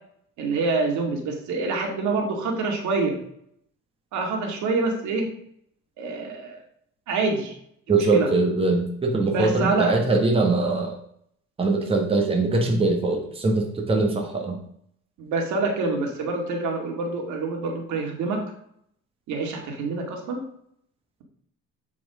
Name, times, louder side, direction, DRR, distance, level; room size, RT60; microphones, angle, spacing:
voice 1, 0.4-3.2 4.1-5.3 6.0-6.6 7.1-7.5 7.9-8.3 9.3-9.9 15.2-18.4 19.3-20.4, right 3 dB, 70° right, 2 dB, 2.3 m, -26 dB
voice 2, 7.9-10.9 11.6-14.6, right 3 dB, 20° right, 1 dB, 1.5 m, -22 dB
7.8 x 6.0 x 4.9 m, 0.69 s
cardioid pair, 140°, 30 cm